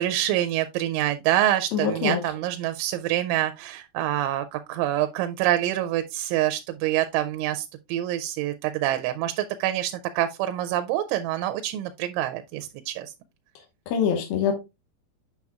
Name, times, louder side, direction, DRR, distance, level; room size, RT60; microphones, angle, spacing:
voice 1, 0.0-13.1, right 13 dB, 85° right, 3.0 m, -26 dB
voice 2, 1.7-2.2 13.9-14.5, left 7 dB, 70° left, 2.5 m, -24 dB
8.3 x 6.7 x 2.3 m
omnidirectional pair, 5.4 m